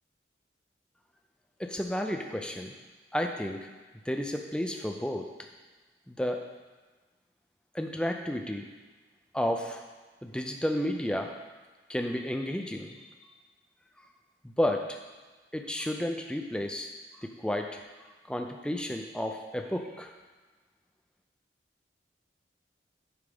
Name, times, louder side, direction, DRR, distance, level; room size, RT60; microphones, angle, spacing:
voice 1, 1.6-2.7 3.1-3.6 4.1-5.3 6.1-6.4 7.7-8.7 9.3-9.8 10.2-11.3 11.9-13.0 14.4-15.0 15.5-16.9 17.2-17.8 18.3-20.1, left 1 dB, 5° left, 3 dB, 0.5 m, -31 dB
9.7 x 3.7 x 5.1 m, 1.3 s
head